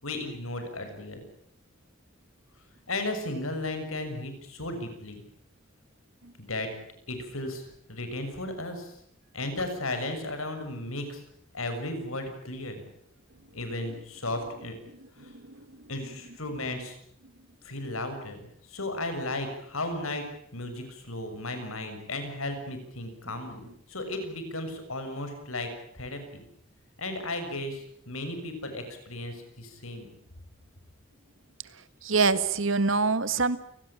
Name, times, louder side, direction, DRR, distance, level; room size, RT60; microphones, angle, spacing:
voice 1, 0.0-1.2 2.9-5.2 6.4-6.7 7.1-8.9 9.3-11.2 11.5-12.8 13.5-14.7 15.2-15.3 15.9-17.0 17.6-20.2 20.5-25.7 25.9-26.4 27.0-30.1, left 2 dB, 90° left, 7 dB, 6.8 m, -35 dB
voice 2, 32.0-33.6, right 4 dB, 70° right, 13 dB, 1.8 m, -25 dB
29.5 x 18.5 x 8.7 m, 0.70 s
head